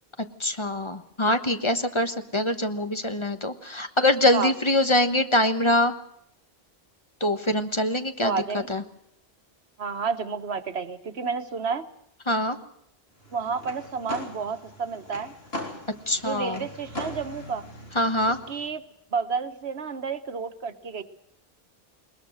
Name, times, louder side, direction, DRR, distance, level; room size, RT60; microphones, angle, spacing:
voice 1, 0.4-5.9 7.2-8.3 8.7-8.8 12.3-12.6 16.1-16.6 17.9-18.4, left 1 dB, 30° left, 8 dB, 1.3 m, -24 dB
voice 2, 8.2-8.7 9.8-11.9 13.3-15.3 16.2-17.6 18.5-18.8 19.1-21.0, right 5 dB, 85° right, 10 dB, 1.5 m, -30 dB
sound 1, 13.2-18.7, left 1 dB, 75° left, 4.0 m, -39 dB
21.0 x 20.5 x 6.4 m, 0.75 s
omnidirectional pair, 1.0 m